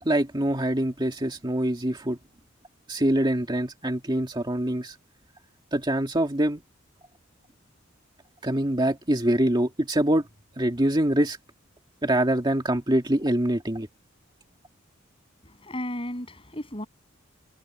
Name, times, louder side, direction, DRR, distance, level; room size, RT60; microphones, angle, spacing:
voice 1, 0.0-2.2 2.9-5.0 5.7-6.6 8.4-10.3 10.6-11.4 12.0-13.9, right 1 dB, 20° right, 2.2 m, -24 dB
voice 2, 15.4-16.9, left 1 dB, 25° left, 7.5 m, -34 dB
head